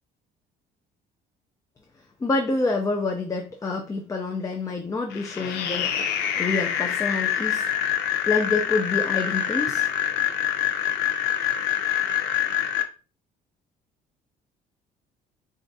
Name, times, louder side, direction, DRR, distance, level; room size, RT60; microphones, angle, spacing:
voice 1, 2.2-5.9 6.4-7.6 8.3-9.9, left 3 dB, 20° left, 2 dB, 0.6 m, -27 dB
sound 1, 5.1-12.8, left 9 dB, 80° left, 0.6 m, -25 dB
4.4 x 2.5 x 2.6 m, 0.33 s
cardioid pair, 110°, 17 cm